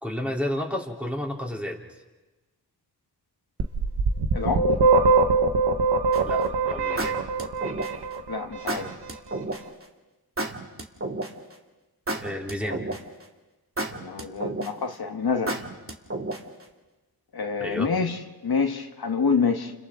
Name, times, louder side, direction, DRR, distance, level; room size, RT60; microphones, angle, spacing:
voice 1, 0.0-1.8 6.3-7.2 12.2-12.8 17.6-17.9, left 1 dB, 5° right, -1 dB, 3.5 m, -31 dB
sound 1, 3.6-8.4, right 3 dB, 75° right, 1.5 m, -22 dB
voice 2, 4.3-4.7 8.3-8.9 13.9-15.6 17.3-19.7, left 5 dB, 65° left, 5 dB, 1.4 m, -27 dB
sound 2, 6.1-6.4 7.0-8.1 8.7-9.6 10.4-11.5 12.1-13.2 13.8-14.9 15.5-16.6, right 2 dB, 35° right, 2.4 m, -31 dB
30.0 x 29.0 x 3.8 m, 1.2 s
cardioid pair, 55°, 40 cm